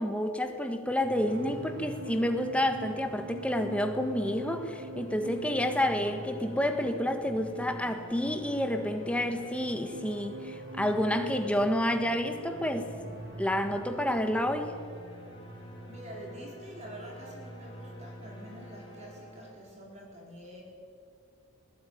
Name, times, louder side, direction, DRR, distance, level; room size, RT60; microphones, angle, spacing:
voice 1, 0.0-12.9 13.4-14.7, left 1 dB, 5° left, 6 dB, 1.5 m, -29 dB
sound 1, 0.9-17.5 17.8-18.1, right 2 dB, 50° right, 1.0 m, -46 dB
sound 2, 1.0-19.9, equal, 20° left, 7.0 m, -47 dB
voice 2, 15.9-20.6, right 1 dB, 30° right, -2 dB, 4.5 m, -46 dB
20.5 x 19.0 x 9.5 m, 2.4 s
head